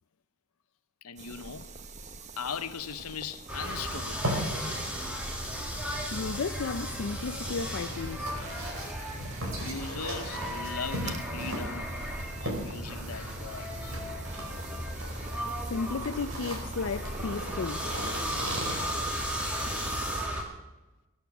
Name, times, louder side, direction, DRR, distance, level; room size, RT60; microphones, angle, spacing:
voice 1, 1.0-1.7 2.4-4.3 9.6-12.0 12.4-14.0, left 6 dB, 85° left, 0.8 m, -39 dB
sound 1, 1.2-20.3, right 3 dB, 30° right, 0.8 m, -45 dB
sound 2, 3.5-20.4, equal, 5° right, 2.2 m, -36 dB
sound 3, 4.2-18.8, equal, 65° right, 4.6 m, -39 dB
voice 2, 6.1-8.4 15.7-17.9, left 4 dB, 65° left, 0.4 m, -34 dB
23.0 x 8.8 x 5.9 m
head